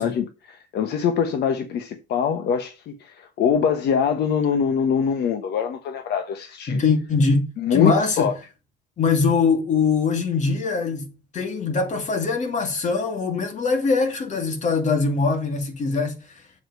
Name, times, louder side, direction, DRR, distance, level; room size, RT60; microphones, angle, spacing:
voice 1, 0.0-6.8 7.6-7.9 8.2-8.3, left 7 dB, 65° left, 1.1 m, -23 dB
voice 2, 6.7-8.3 9.0-11.1 11.3-16.2, left 4 dB, 40° left, 2.3 m, -22 dB
7.3 x 4.7 x 6.7 m
cardioid pair, 140°, 19 cm